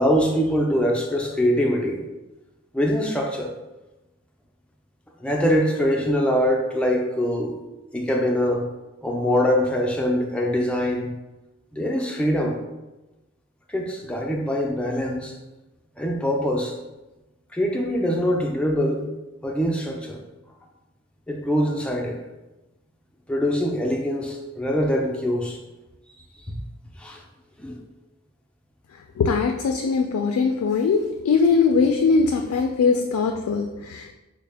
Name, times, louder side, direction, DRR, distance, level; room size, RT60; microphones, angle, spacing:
voice 1, 0.0-2.0 2.7-3.5 5.2-7.5 7.9-8.7 9.0-11.1 11.7-12.6 13.7-15.3 16.0-16.8 17.5-19.0 19.4-20.2 21.3-22.2 23.3-25.6 26.5-26.6 27.0-27.2 27.6-27.8, equal, 5° left, 0 dB, 0.3 m, -23 dB
voice 2, 29.2-34.1, left 5 dB, 85° left, 4 dB, 0.3 m, -21 dB
4.2 x 2.1 x 3.3 m, 1.0 s
head